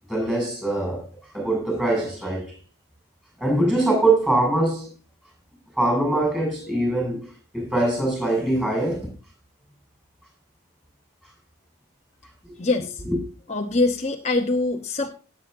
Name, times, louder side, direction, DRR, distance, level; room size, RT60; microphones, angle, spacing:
voice 1, 0.1-1.0 1.3-2.5 3.4-4.9 5.7-7.3 7.5-9.1 12.4-12.5 13.0-13.2, right 2 dB, 5° right, 6.8 m, -23 dB
voice 2, 12.6-13.0 13.5-15.1, left 2 dB, 30° left, 0.9 m, -23 dB
18.0 x 8.3 x 2.7 m
head